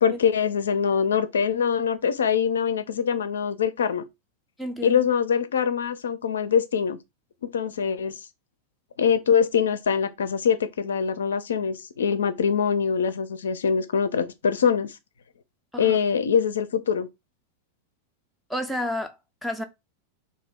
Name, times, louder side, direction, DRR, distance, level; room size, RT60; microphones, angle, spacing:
voice 1, 0.0-4.0 4.8-7.0 7.5-8.2 9.0-15.0 15.8-17.1, left 7 dB, 65° left, 0.4 m, -23 dB
voice 2, 4.6-5.0 15.7-16.0 18.5-19.1 19.4-19.6, left 1 dB, ahead, 0.4 m, -30 dB
2.8 x 2.3 x 3.4 m
figure-of-eight pair, 90°, 0 cm